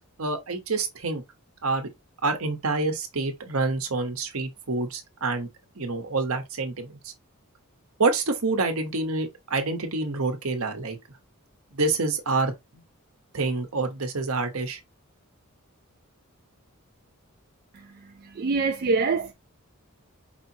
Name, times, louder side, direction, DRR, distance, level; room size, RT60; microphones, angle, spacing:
voice 1, 0.2-1.2 1.6-1.9 2.2-5.5 5.7-7.1 8.0-11.0 11.7-12.8 13.3-14.8, right 3 dB, 70° right, 1.0 m, -27 dB
voice 2, 17.7-19.3, right 4 dB, 45° right, 0.4 m, -26 dB
4.9 x 2.9 x 2.7 m
head